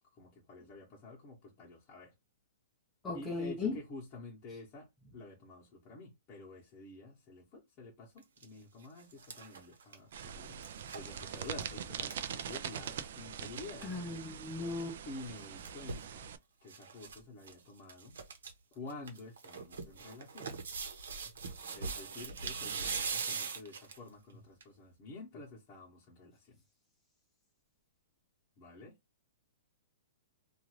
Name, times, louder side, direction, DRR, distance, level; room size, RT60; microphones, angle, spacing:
voice 1, 0.2-2.1 3.1-10.6 10.9-14.0 15.1-16.2 16.6-18.1 18.7-20.5 21.7-26.6 28.6-28.9, left 2 dB, 25° left, 0.9 m, -49 dB
voice 2, 3.0-3.8 13.8-15.0, left 3 dB, 10° left, 0.6 m, -37 dB
sound 1, 8.2-8.4 8.8-13.1 13.4-13.5 13.6-13.9 15.2-16.1 16.7-17.2 17.4-17.5 17.9-18.5 18.9-24.1 24.6-24.7, right 5 dB, 85° right, 0.9 m, -41 dB
sound 2, 10.1-16.4, right 8 dB, 60° right, 0.4 m, -43 dB
2.5 x 2.4 x 3.0 m
hypercardioid pair, 160°, 0 cm